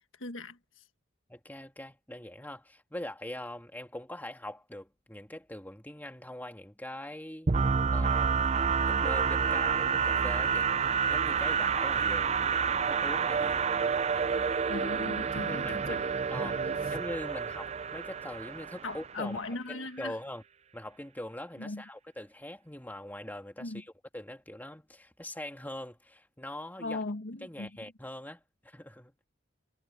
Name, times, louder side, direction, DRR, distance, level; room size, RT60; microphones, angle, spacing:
voice 1, 0.2-0.8 14.7-16.0 16.4-16.8 18.8-20.2 21.6-21.8 23.6-23.8 26.8-27.7, left 2 dB, 75° left, 1.5 m, -38 dB
voice 2, 1.3-7.5 7.9-8.4 8.8-14.2 15.4-19.4 19.7-20.4 20.7-27.0 27.4-29.2, left 1 dB, 10° left, 2.9 m, -42 dB
sound 1, 7.5-19.2, right 6 dB, 35° right, 0.5 m, -29 dB
head